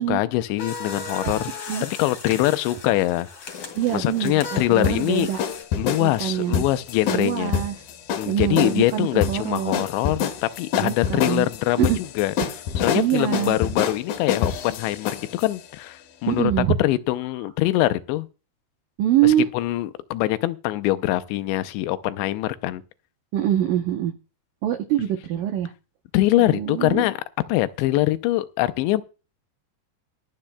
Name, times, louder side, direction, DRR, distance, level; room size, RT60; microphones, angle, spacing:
voice 1, 0.0-3.3 3.9-5.3 5.8-7.5 8.2-11.9 12.2-12.3 12.8-16.5 16.8-18.3 19.2-22.8 26.1-27.2 27.5-29.0, left 16 dB, 85° left, 2.9 m, -23 dB
sound 1, 0.6-5.6, left 4 dB, 40° left, 2.4 m, -37 dB
sound 2, 3.5-15.5, left 7 dB, 65° left, 2.5 m, -27 dB
voice 2, 3.8-5.4 6.0-6.6 7.1-7.7 8.3-9.8 10.8-11.5 11.8-12.0 12.9-13.6 16.3-16.8 19.0-19.5 23.3-24.1 24.6-25.7 26.4-27.0, right 11 dB, 85° right, 1.8 m, -24 dB
23.5 x 8.6 x 2.2 m
omnidirectional pair, 5.1 m